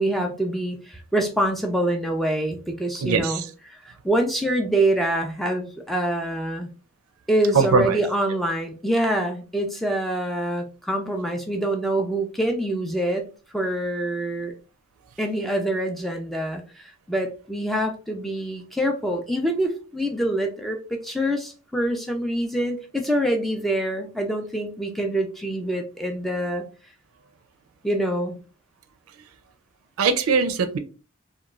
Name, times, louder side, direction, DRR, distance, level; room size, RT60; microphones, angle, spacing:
voice 1, 0.0-3.4 3.7-6.7 7.3-13.3 13.5-14.5 15.2-26.6 27.8-28.4, right 1 dB, ahead, 3 dB, 0.3 m, -25 dB
voice 2, 3.0-3.5 7.5-8.0 30.0-30.8, right 5 dB, 85° right, 8 dB, 0.4 m, -21 dB
2.9 x 2.2 x 2.3 m, 0.35 s
head